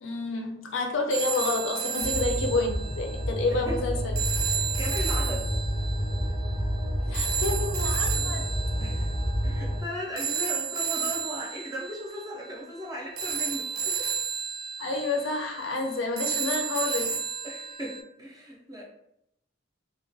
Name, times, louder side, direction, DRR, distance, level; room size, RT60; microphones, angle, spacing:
voice 1, 0.0-4.1 7.1-8.4 14.8-17.2, left 3 dB, 65° left, 2 dB, 0.4 m, -29 dB
sound 1, 1.1-18.0, right 7 dB, 85° right, 0.4 m, -33 dB
sound 2, 2.0-9.8, equal, 70° right, 0.8 m, -29 dB
voice 2, 3.5-3.8 4.5-5.5 8.8-9.1 9.4-14.1 17.4-18.8, equal, 15° right, -3 dB, 0.4 m, -37 dB
2.3 x 2.2 x 2.5 m, 0.78 s
head